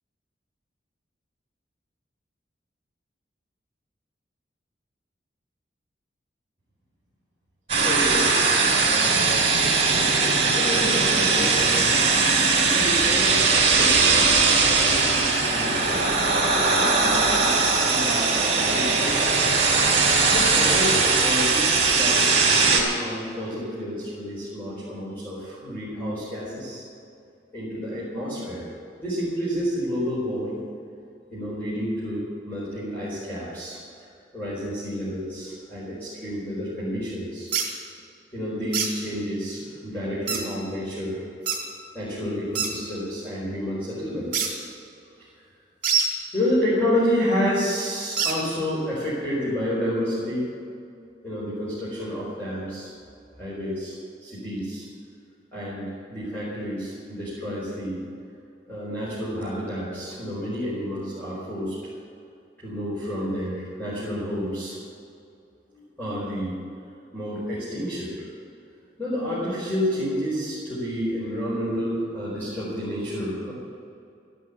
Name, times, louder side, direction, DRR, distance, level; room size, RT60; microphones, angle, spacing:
sound 1, 7.7-22.8, right 4 dB, 35° right, 3.9 m, -20 dB
voice 1, 7.8-9.4 10.5-12.1 12.6-14.0 14.3-16.1 17.0-19.3 20.3-26.8 27.5-28.7 29.0-30.6 31.3-34.1 34.3-37.5 38.3-41.2 41.9-44.5 46.3-50.5 51.2-52.9 53.4-54.9 55.5-58.0 58.7-61.7 62.6-64.8 65.7-66.5 67.1-68.3 69.0-73.5, equal, 10° left, -10 dB, 4.5 m, -30 dB
sound 2, 37.5-37.7 38.7-38.9 40.3-40.4 41.5-41.6 42.5-42.7 44.3-44.5 45.8-46.1 48.2-48.4, right 6 dB, 50° right, 3.0 m, -24 dB
15.0 x 11.0 x 8.2 m, 2.5 s
head